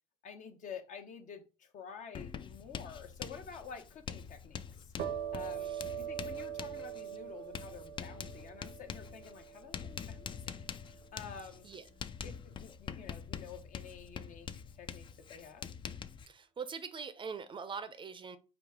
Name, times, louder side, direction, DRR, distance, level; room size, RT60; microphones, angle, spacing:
voice 1, 0.2-4.9 5.3-5.7 6.0-11.7 12.2-14.5 14.7-15.7, left 6 dB, 55° left, 0.8 m, -49 dB
Writing, 2.1-16.3, left 7 dB, 30° left, 0.4 m, -45 dB
sound 1, 5.0-12.4, right 10 dB, 70° right, 0.7 m, -44 dB
voice 2, 16.3-18.4, right 5 dB, 30° right, 0.5 m, -43 dB
4.9 x 2.3 x 3.5 m
hypercardioid pair, 60°, 16 cm